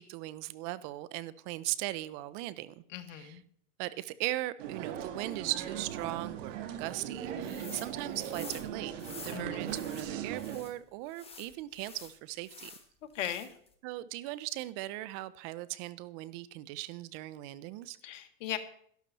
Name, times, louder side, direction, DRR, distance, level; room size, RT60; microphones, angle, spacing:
voice 1, 0.0-2.8 3.2-3.4 3.8-8.9 9.2-12.7 13.8-18.0, right 17 dB, 45° right, 17 dB, 0.8 m, -38 dB
voice 2, 2.9-3.4 9.3-9.7 13.1-13.5 18.0-18.6, left 12 dB, 70° left, 9 dB, 1.7 m, -38 dB
sound 1, 4.6-10.6, right 9 dB, 70° right, 1.8 m, -39 dB
sound 2, 7.4-10.7 11.1-12.8 13.2-13.7, left 5 dB, 15° left, 1.7 m, -49 dB
12.5 x 12.0 x 4.2 m, 0.63 s
hypercardioid pair, 125°, 39 cm